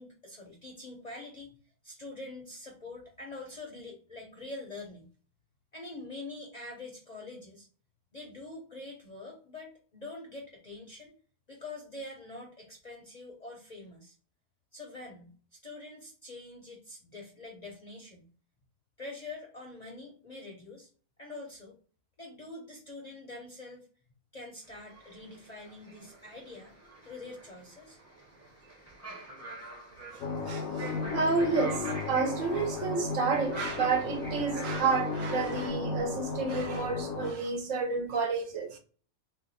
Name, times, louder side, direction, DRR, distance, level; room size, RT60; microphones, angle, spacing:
voice 1, 0.0-1.5 1.8-5.1 5.7-7.7 8.1-11.1 11.5-14.2 14.7-18.3 19.0-20.9 21.2-21.8 22.2-23.9 24.3-26.8 27.0-28.0, left 2 dB, 40° left, 0.6 m, -45 dB
sound 1, 24.6-35.7, right 2 dB, 15° right, 0.7 m, -45 dB
voice 2, 30.1-38.8, right 4 dB, 70° right, 0.9 m, -30 dB
sound 2, 30.2-37.3, left 4 dB, 75° left, 0.9 m, -35 dB
2.5 x 2.3 x 3.9 m
omnidirectional pair, 1.5 m